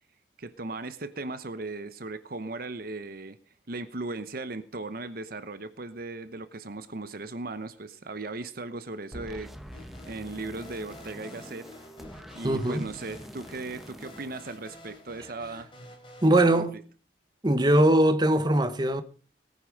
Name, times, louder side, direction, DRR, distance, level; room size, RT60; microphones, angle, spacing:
voice 1, 0.4-3.4 3.7-9.5 10.1-11.7 12.3-15.9 16.3-16.6, right 3 dB, 55° right, 0.9 m, -37 dB
sound 1, 9.1-15.3, equal, ahead, 1.0 m, -46 dB
sound 2, 9.7-16.6, left 2 dB, 30° left, 3.5 m, -50 dB
voice 2, 12.4-12.9 16.2-16.7 17.4-19.0, right 1 dB, 25° right, 1.1 m, -21 dB
18.5 x 9.6 x 5.2 m
head